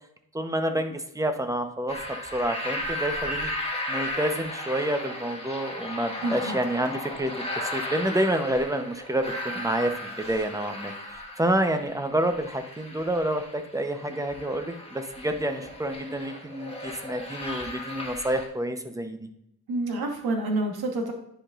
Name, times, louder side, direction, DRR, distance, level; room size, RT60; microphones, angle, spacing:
voice 1, 0.3-3.5 3.9-19.3, right 1 dB, 10° right, 7 dB, 0.7 m, -28 dB
sound 1, 1.9-18.5, left 1 dB, 15° left, 1.5 m, -35 dB
voice 2, 6.2-6.6 19.7-21.1, right 2 dB, 80° right, 3 dB, 1.3 m, -28 dB
10.0 x 5.0 x 2.4 m, 0.79 s
cardioid pair, 95°, 37 cm